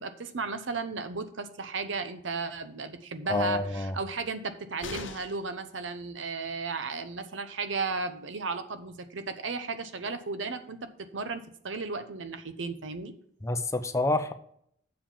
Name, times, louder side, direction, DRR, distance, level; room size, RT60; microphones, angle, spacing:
voice 1, 0.0-13.1, right 4 dB, 75° right, 10 dB, 0.8 m, -35 dB
voice 2, 3.3-3.9 13.4-14.3, left 2 dB, 15° left, 9 dB, 0.6 m, -28 dB
sound 1, 4.8-5.5 7.5-7.6 7.9-8.0, left 5 dB, 75° left, 0.8 m, -41 dB
7.4 x 4.9 x 7.1 m, 0.69 s
head